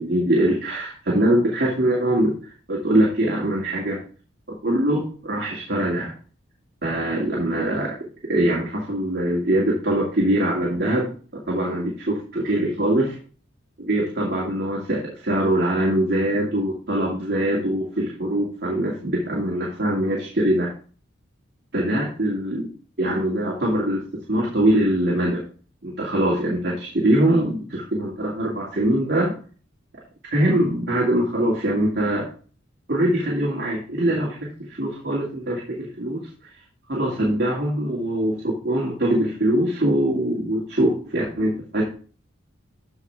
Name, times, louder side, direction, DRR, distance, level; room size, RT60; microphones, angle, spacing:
voice 1, 0.0-4.0 4.6-6.1 6.8-8.0 8.3-11.1 11.5-13.2 13.8-20.7 21.7-22.7 23.0-25.4 25.8-29.3 30.3-32.3 32.9-36.2 36.9-41.8, right 1 dB, 55° right, -4 dB, 2.5 m, -22 dB
13.5 x 4.9 x 3.5 m, 0.40 s
head